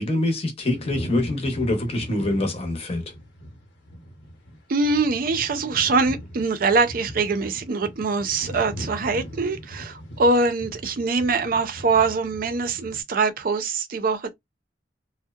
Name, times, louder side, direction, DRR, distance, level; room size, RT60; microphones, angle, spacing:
voice 1, 0.0-3.0, left 1 dB, 35° left, 0.7 m, -25 dB
sound 1, 0.7-13.0, equal, 85° left, 0.9 m, -39 dB
voice 2, 4.7-14.3, right 3 dB, 50° right, 0.5 m, -23 dB
2.7 x 2.0 x 2.3 m
head